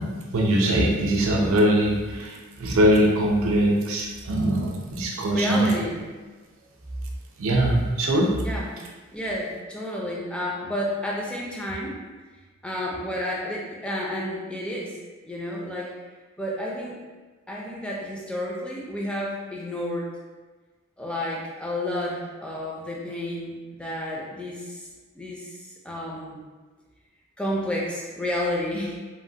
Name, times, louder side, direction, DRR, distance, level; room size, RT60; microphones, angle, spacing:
voice 1, 0.0-5.8 7.4-8.4, right 1 dB, 70° right, 0 dB, 0.5 m, -22 dB
voice 2, 5.3-6.0 8.3-8.7 9.1-12.0 12.6-15.0 15.2-15.9 16.4-17.0 17.5-20.1 21.0-24.9 25.2-26.4 27.4-29.0, left 1 dB, 5° left, -4 dB, 0.4 m, -31 dB
3.1 x 2.1 x 2.7 m, 1.3 s
head